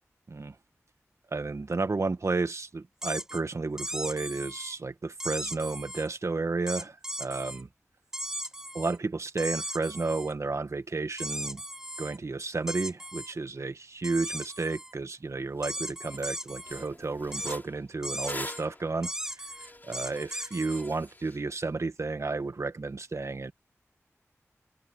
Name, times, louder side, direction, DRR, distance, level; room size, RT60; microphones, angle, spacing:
voice 1, 1.3-7.7 8.7-11.6 12.0-19.1 19.4-19.5 19.8-23.5, right 3 dB, 60° right, 1.6 m, -32 dB
sound 1, 3.0-3.4 3.8-4.7 5.2-6.1 6.7-7.6 8.1-9.0 9.4-10.3 11.2-12.2 12.7-13.3 14.0-14.9 15.6-16.9 17.3-17.6 18.0-18.6 19.0-20.9, equal, 10° right, 5.3 m, -37 dB
sound 2, 15.6-15.7 16.1-16.3 16.6-21.4, left 2 dB, 35° left, 4.6 m, -44 dB
open air
cardioid pair, 45°, 6 cm